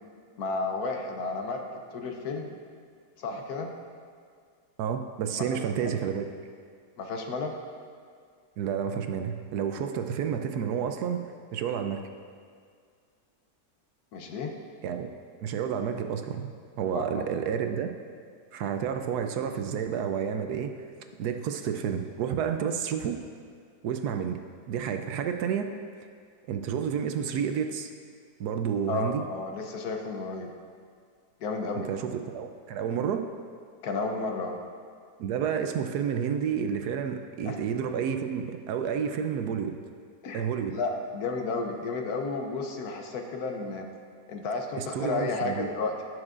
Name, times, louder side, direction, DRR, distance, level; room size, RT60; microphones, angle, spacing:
voice 1, 0.4-1.6 1.9-2.6 3.2-3.7 5.5-5.6 7.0-7.6 14.1-14.6 16.9-17.2 28.9-30.5 31.4-31.9 33.8-34.6 37.4-37.6 40.2-40.4 40.7-43.9 44.3-45.9, left 3 dB, 65° left, 3 dB, 1.2 m, -32 dB
voice 2, 4.8-6.3 8.6-12.0 14.8-15.1 15.4-16.5 16.8-17.9 18.5-20.9 21.2-23.2 23.8-24.4 24.7-25.7 26.5-27.9 28.4-29.2 31.7-33.3 35.2-39.8 40.3-40.8 44.8-45.7, right 7 dB, 75° right, 6 dB, 1.1 m, -30 dB
17.0 x 6.3 x 2.5 m, 2.1 s
omnidirectional pair, 1.8 m